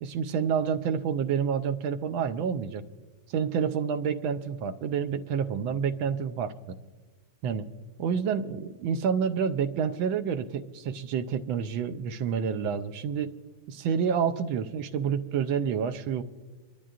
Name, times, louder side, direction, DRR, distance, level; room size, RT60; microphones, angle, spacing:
voice 1, 0.0-2.8 3.3-6.8 7.4-7.7 8.0-13.3 13.7-16.2, right 7 dB, 80° right, 9 dB, 1.5 m, -28 dB
26.0 x 12.0 x 2.5 m, 1.3 s
omnidirectional pair, 2.2 m